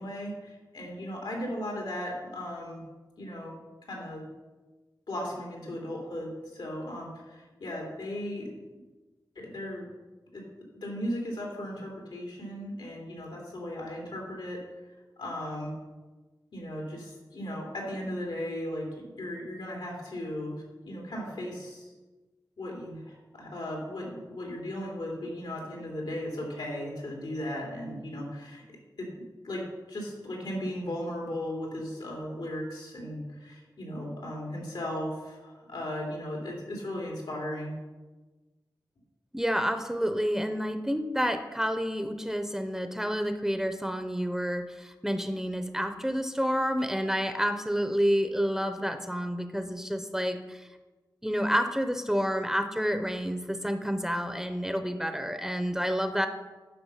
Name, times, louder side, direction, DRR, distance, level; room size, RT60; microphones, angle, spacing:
voice 1, 0.0-2.8 3.2-3.6 3.9-4.2 5.1-8.5 9.3-9.9 10.3-10.5 10.7-14.6 15.2-15.8 16.5-21.9 22.6-29.1 29.4-37.8, left 1 dB, 85° left, -1 dB, 3.1 m, -36 dB
voice 2, 39.3-50.7 51.2-56.3, equal, 5° right, 8 dB, 0.7 m, -29 dB
10.0 x 6.7 x 5.6 m, 1.2 s
wide cardioid pair, 95°, 8 cm